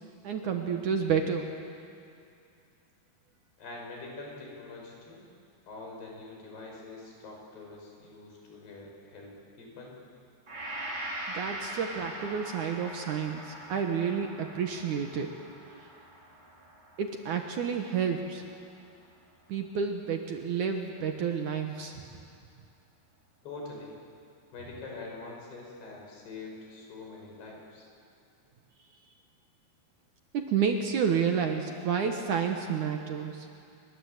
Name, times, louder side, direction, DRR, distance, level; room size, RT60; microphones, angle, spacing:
voice 1, 0.2-1.5 11.3-15.3 17.0-18.4 19.5-22.0 30.3-33.5, right 7 dB, 65° right, 4 dB, 2.3 m, -30 dB
voice 2, 3.6-5.2 5.7-10.0 23.4-23.9 24.5-27.9, left 3 dB, 80° left, -1 dB, 7.7 m, -44 dB
Gong, 10.5-18.8 19.2-19.3, right 1 dB, 30° right, 6.3 m, -42 dB
29.0 x 23.0 x 8.1 m, 2.5 s
omnidirectional pair, 4.6 m